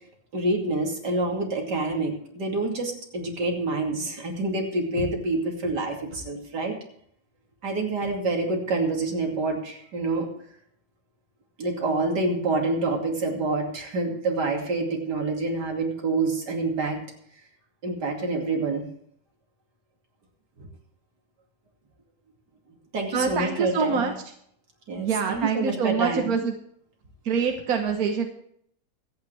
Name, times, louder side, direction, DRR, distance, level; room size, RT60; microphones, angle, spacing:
voice 1, 0.3-6.7 7.6-10.3 11.6-17.0 17.8-18.8 20.6-20.7 22.9-24.1 24.9-26.3, right 2 dB, 80° right, 1 dB, 3.1 m, -27 dB
voice 2, 23.1-24.1 25.0-26.6 27.2-28.3, right 5 dB, 60° right, 4 dB, 1.6 m, -25 dB
23.5 x 9.0 x 3.4 m, 0.67 s
omnidirectional pair, 1.8 m